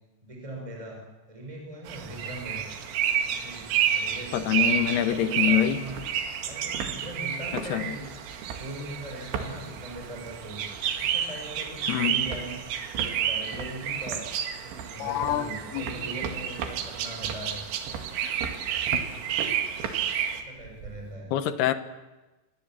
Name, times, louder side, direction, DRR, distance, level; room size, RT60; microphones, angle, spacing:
voice 1, 0.2-2.7 3.2-6.0 6.4-8.1 8.4-10.7 11.0-12.7 12.9-14.3 14.6-17.6 20.3-21.3, right 1 dB, 5° right, 1 dB, 5.2 m, -40 dB
sound 1, 1.9-20.4, right 9 dB, 90° right, 4.5 m, -30 dB
sound 2, 2.4-3.1 3.4-3.5 3.7-11.1 11.4-21.2, right 6 dB, 70° right, 4.5 m, -40 dB
voice 2, 4.3-5.8 7.7-7.8 11.9-12.1 15.0-15.8 21.3-21.7, left 11 dB, 70° left, 10 dB, 2.7 m, -25 dB
27.0 x 21.5 x 7.5 m, 1.1 s
omnidirectional pair, 5.7 m